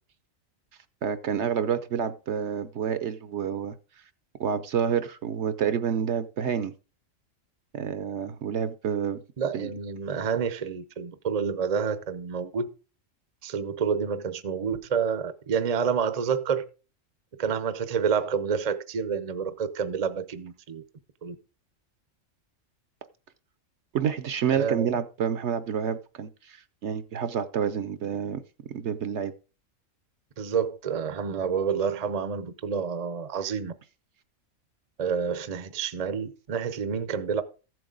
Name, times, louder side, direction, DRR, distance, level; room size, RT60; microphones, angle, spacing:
voice 1, 1.0-3.7 4.4-6.7 7.7-9.2 9.5-9.7 23.9-28.4 28.7-29.3, right 7 dB, 65° right, 0.9 m, -28 dB
voice 2, 9.4-12.7 13.4-16.6 17.4-20.8 21.2-21.4 24.5-24.9 30.4-33.7 35.0-37.4, right 6 dB, 35° right, 0.7 m, -28 dB
14.5 x 7.8 x 3.8 m
omnidirectional pair, 1.4 m